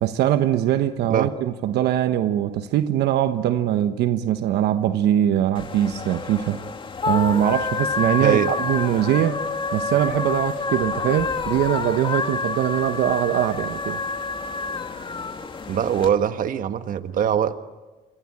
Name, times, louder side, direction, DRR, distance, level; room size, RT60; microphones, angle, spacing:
voice 1, 0.0-6.6 7.1-9.4 9.7-14.0, right 11 dB, 75° right, 1.2 m, -22 dB
sound 1, 5.5-16.1, left 4 dB, 30° left, 2.6 m, -28 dB
voice 2, 8.2-8.5 15.7-17.6, right 9 dB, 55° right, 1.5 m, -22 dB
28.0 x 23.0 x 8.8 m
cardioid pair, 110°, 17 cm